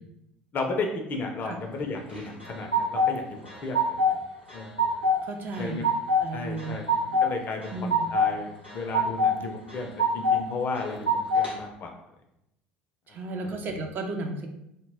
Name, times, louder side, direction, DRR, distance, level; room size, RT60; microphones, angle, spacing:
voice 1, 0.5-4.1 4.5-4.7 5.6-5.8 6.3-11.9 13.1-13.5, left 3 dB, 35° left, 3 dB, 0.4 m, -34 dB
sound 1, 2.1-3.1 3.5-4.2 4.5-5.2 5.5-6.2 6.6-7.3 7.6-8.3 8.6-9.3 9.7-10.4 10.8-11.5, left 1 dB, 90° right, 0.6 m, -24 dB
voice 2, 5.2-5.8 6.2-6.8 7.7-8.1 13.1-14.5, right 3 dB, 35° right, 3 dB, 0.4 m, -34 dB
2.1 x 2.0 x 3.3 m, 0.84 s
figure-of-eight pair, 65°, 6 cm